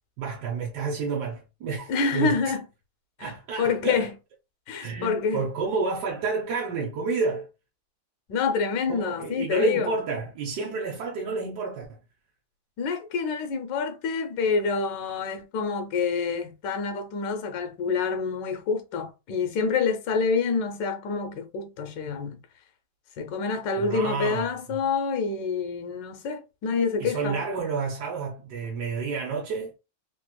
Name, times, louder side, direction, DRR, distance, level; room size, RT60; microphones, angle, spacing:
voice 1, 0.2-2.5 3.2-4.1 4.8-7.5 8.9-12.0 23.8-24.9 27.0-29.7, right 4 dB, 65° right, 1.2 m, -30 dB
voice 2, 1.9-2.6 3.2-3.3 3.6-4.1 4.7-5.4 8.3-9.9 12.8-22.4 23.2-27.4, left 5 dB, 65° left, 1.3 m, -27 dB
3.4 x 2.8 x 2.2 m
omnidirectional pair, 2.3 m